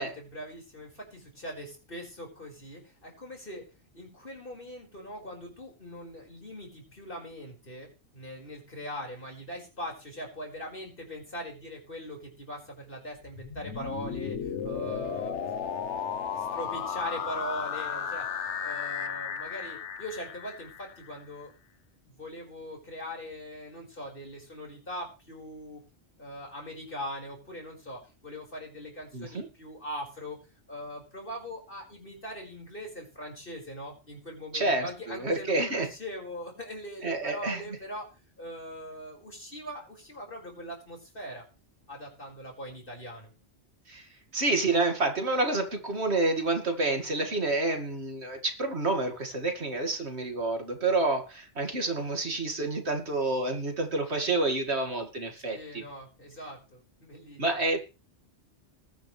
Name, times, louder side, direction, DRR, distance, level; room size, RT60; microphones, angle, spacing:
voice 1, 0.0-15.4 16.3-18.3 18.6-21.5 22.0-25.8 26.2-30.4 30.7-38.1 38.4-41.4 41.9-43.3 55.5-57.4, equal, 50° left, 0 dB, 5.5 m, -41 dB
sound 1, 13.2-21.2, left 7 dB, 75° left, 1.3 m, -34 dB
voice 2, 29.1-29.4 34.5-35.9 37.0-37.6 43.9-55.8 57.4-57.8, right 2 dB, 65° right, 4 dB, 2.5 m, -29 dB
20.5 x 10.0 x 3.3 m, 0.32 s
omnidirectional pair, 1.2 m